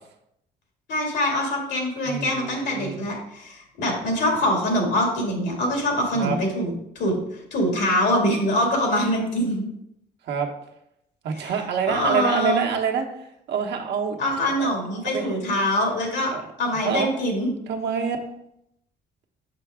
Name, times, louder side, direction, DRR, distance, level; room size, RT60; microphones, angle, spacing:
voice 1, 0.9-7.2 7.5-9.7 11.4-11.5 11.9-12.7 14.2-16.3 16.6-17.5, equal, 85° left, 0 dB, 2.4 m, -24 dB
voice 2, 2.0-3.0 6.1-6.4 10.2-10.5 11.2-14.2 14.5-14.7 15.0-15.4 16.3-16.4 16.7-17.1 17.7-18.2, right 6 dB, 85° right, 2 dB, 1.1 m, -27 dB
6.8 x 5.8 x 3.6 m, 0.78 s
cardioid pair, 115°, 17 cm